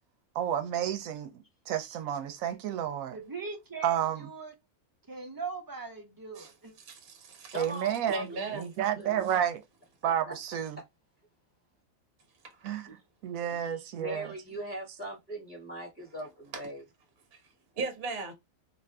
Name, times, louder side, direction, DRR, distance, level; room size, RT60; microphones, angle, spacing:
voice 1, 0.3-3.2 3.8-4.3 7.5-9.6 10.0-10.8 12.6-12.9 13.2-14.3, right 10 dB, 80° right, 1.0 m, -31 dB
voice 2, 3.1-4.5 5.1-6.7, right 4 dB, 30° right, 0.4 m, -40 dB
voice 3, 6.8-7.6 8.1-8.6 12.4-12.7 16.5-16.6 17.8-18.3, right 3 dB, 50° right, 1.1 m, -37 dB
voice 4, 7.5-8.2 8.5-8.7 9.0-9.2 10.0-10.3 12.9-13.0 13.6-16.8, right 1 dB, 20° left, 1.2 m, -40 dB
2.6 x 2.6 x 3.2 m
omnidirectional pair, 1.4 m